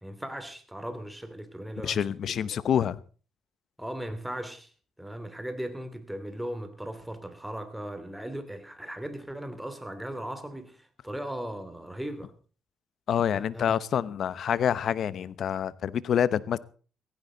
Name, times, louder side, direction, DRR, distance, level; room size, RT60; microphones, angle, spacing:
voice 1, 0.0-2.6 3.8-4.7 5.0-12.3 13.3-13.8, right 1 dB, 5° right, 2.9 m, -38 dB
voice 2, 1.8-3.0 13.1-16.6, left 9 dB, 65° left, 0.9 m, -27 dB
16.5 x 15.5 x 4.0 m
cardioid pair, 90°, 0 cm